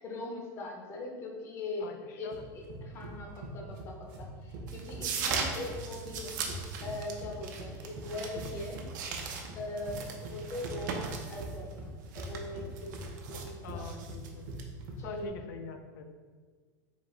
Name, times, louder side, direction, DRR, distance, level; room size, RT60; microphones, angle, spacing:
voice 1, 0.0-1.9 2.2-6.4 6.8-8.9 9.6-13.8 15.0-15.3, left 2 dB, 25° left, 0 dB, 0.6 m, -41 dB
voice 2, 1.8-2.3 13.6-14.5 15.0-16.1, left 6 dB, 90° left, 6 dB, 0.4 m, -45 dB
sound 1, 2.3-15.3, right 1 dB, 45° right, 0.7 m, -43 dB
sound 2, 4.7-15.0, right 5 dB, 75° right, 0.6 m, -39 dB
4.0 x 2.8 x 4.3 m, 1.5 s
supercardioid pair, 170°, 10 cm